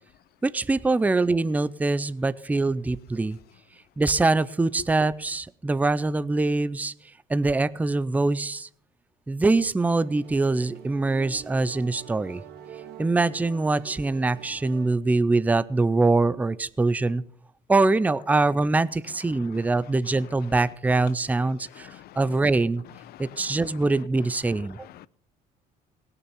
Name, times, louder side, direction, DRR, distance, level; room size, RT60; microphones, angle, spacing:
voice 1, 0.4-3.4 4.0-6.9 7.3-8.7 9.3-12.4 13.0-17.2 17.7-21.9 22.2-22.8 23.2-24.8, right 3 dB, 10° right, 0.4 m, -23 dB
sound 1, 9.9-15.0, right 9 dB, 75° right, 1.4 m, -45 dB
voice 2, 21.7-22.2 23.1-23.7 24.8-25.1, left 14 dB, 65° left, 0.6 m, -47 dB
18.0 x 6.8 x 7.1 m
cardioid pair, 110°, 17 cm